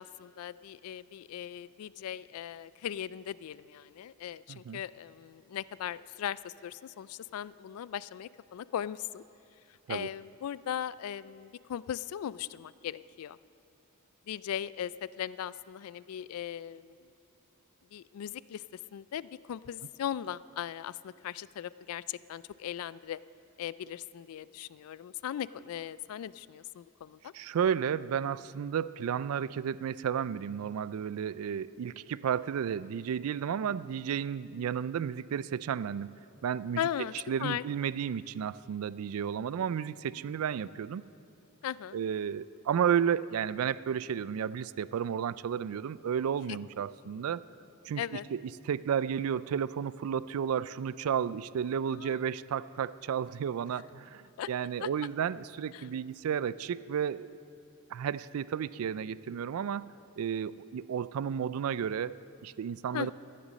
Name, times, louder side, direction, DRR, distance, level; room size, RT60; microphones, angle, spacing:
voice 1, 0.0-9.2 9.9-13.4 14.3-17.0 17.9-18.6 18.9-23.2 23.6-27.3 36.8-37.1 37.4-37.6 41.6-42.0 46.5-46.6 48.0-48.2 51.9-52.2 54.4-54.5 54.8-54.9 55.7-55.9 62.9-63.1, left 10 dB, 80° left, 19 dB, 0.3 m, -38 dB
voice 2, 4.5-4.8 9.9-10.1 27.3-36.8 37.3-41.0 41.9-47.4 47.9-57.4 57.9-63.1, right 8 dB, 80° right, 18 dB, 0.3 m, -32 dB
14.0 x 10.0 x 6.4 m, 2.6 s
head